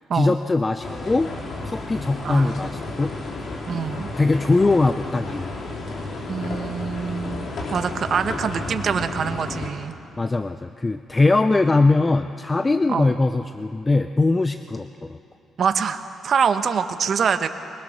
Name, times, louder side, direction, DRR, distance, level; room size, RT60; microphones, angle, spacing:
voice 1, 0.1-1.3 1.6-3.1 4.2-5.5 10.2-15.2, left 3 dB, 20° left, 9 dB, 0.6 m, -21 dB
sound 1, 0.8-9.7, left 2 dB, 55° left, 3.1 m, -32 dB
voice 2, 3.7-4.1 6.3-9.9 12.9-13.1 15.6-17.5, right 6 dB, 55° right, 9 dB, 1.1 m, -24 dB
23.0 x 21.0 x 6.5 m, 2.7 s
cardioid pair, 90°, 0 cm